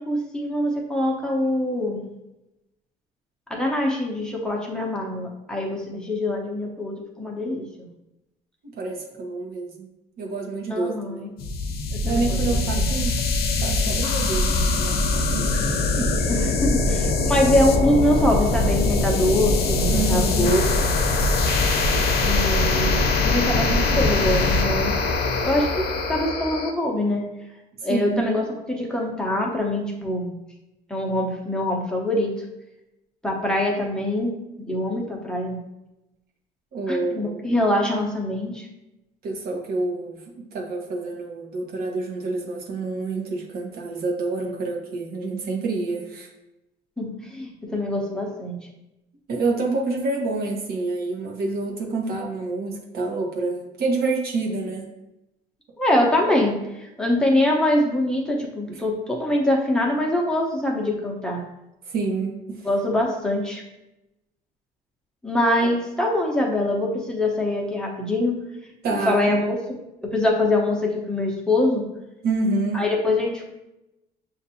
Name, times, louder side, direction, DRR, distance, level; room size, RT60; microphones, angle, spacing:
voice 1, 0.0-2.0 3.5-7.9 10.7-11.3 11.9-12.9 16.3-20.6 22.2-25.0 25.4-27.3 27.8-30.4 30.9-32.3 33.2-34.4 34.7-35.6 36.9-38.7 47.0-48.6 55.8-61.4 62.6-63.6 65.2-68.4 68.9-69.6 70.1-71.8 72.7-73.5, left 1 dB, 5° left, -2 dB, 0.8 m, -24 dB
voice 2, 8.8-9.9 10.2-11.2 12.0-13.2 13.6-15.6 15.9-16.1 19.9-20.6 27.9-28.3 36.7-37.4 39.2-46.3 49.3-54.9 58.7-58.8 61.9-62.7 68.8-69.3 72.2-72.9, right 3 dB, 65° right, 0 dB, 1.0 m, -28 dB
sound 1, 11.4-26.7, left 3 dB, 60° left, 0.6 m, -22 dB
6.5 x 2.6 x 2.7 m, 0.91 s
cardioid pair, 110°, 17 cm